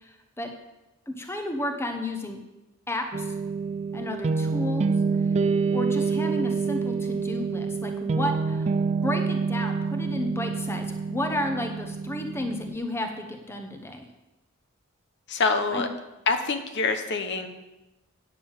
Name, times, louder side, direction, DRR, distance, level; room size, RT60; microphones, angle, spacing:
voice 1, 0.0-0.5 1.1-2.4 2.9-3.3 3.9-4.9 5.7-8.7 9.0-14.1 15.7-15.9, left 1 dB, 10° left, 4 dB, 1.0 m, -32 dB
sound 1, 3.1-12.7, right 4 dB, 30° right, 0.3 m, -27 dB
voice 2, 15.3-15.9 16.3-17.5, left 4 dB, 60° left, 7 dB, 1.0 m, -25 dB
9.1 x 6.8 x 7.3 m, 0.99 s
head